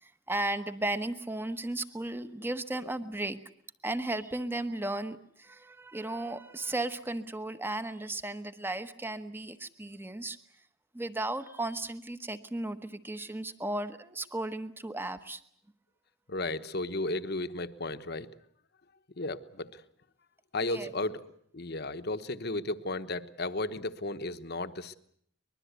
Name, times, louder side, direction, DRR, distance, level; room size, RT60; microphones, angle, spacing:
voice 1, 0.0-3.4 3.8-10.4 10.9-15.4 20.6-20.9, right 2 dB, 10° right, 10 dB, 1.1 m, -35 dB
voice 2, 16.3-18.3 19.2-19.8 20.5-21.2 21.5-25.0, left 2 dB, 50° left, 11 dB, 1.1 m, -34 dB
24.0 x 21.0 x 8.2 m, 0.66 s
head